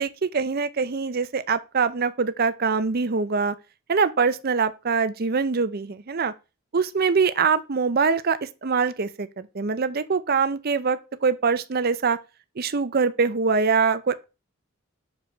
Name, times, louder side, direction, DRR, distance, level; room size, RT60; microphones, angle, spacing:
voice 1, 0.0-3.5 3.9-6.3 6.7-12.2 12.6-14.2, right 5 dB, 45° right, 0.6 m, -23 dB
6.7 x 4.8 x 3.3 m
head